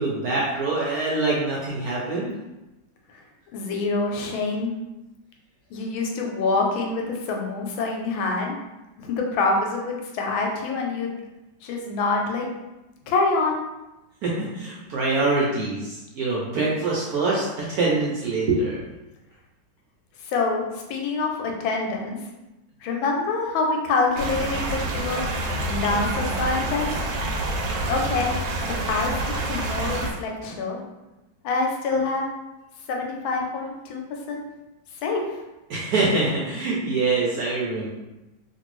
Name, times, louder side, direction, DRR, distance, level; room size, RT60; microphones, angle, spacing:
voice 1, 0.0-2.3 14.2-18.8 35.7-37.9, right 3 dB, 70° right, -5 dB, 0.9 m, -24 dB
voice 2, 3.5-4.7 5.7-8.5 9.0-11.1 11.6-12.5 13.1-13.6 20.2-22.2 22.8-25.4 25.7-26.9 27.9-28.3 28.7-30.8 31.4-32.3 32.9-34.0 34.3-34.4 35.0-35.4, left 3 dB, 90° left, 0 dB, 1.4 m, -26 dB
sound 1, 24.2-30.1, right 2 dB, 85° right, 1.4 m, -27 dB
3.0 x 2.6 x 3.0 m, 1.0 s
omnidirectional pair, 2.1 m